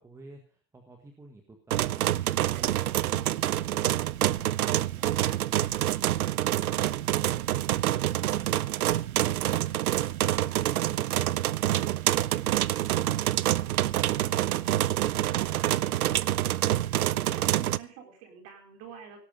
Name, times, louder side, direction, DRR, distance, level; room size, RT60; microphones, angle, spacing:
voice 1, 0.0-7.3, right 2 dB, 5° right, 3 dB, 1.5 m, -54 dB
sound 1, 1.7-17.8, right 13 dB, 60° right, 0.7 m, -27 dB
voice 2, 10.2-10.9 17.0-19.2, right 8 dB, 30° right, 4 dB, 4.7 m, -48 dB
18.0 x 11.5 x 5.3 m, 0.38 s
hypercardioid pair, 150°, 50 cm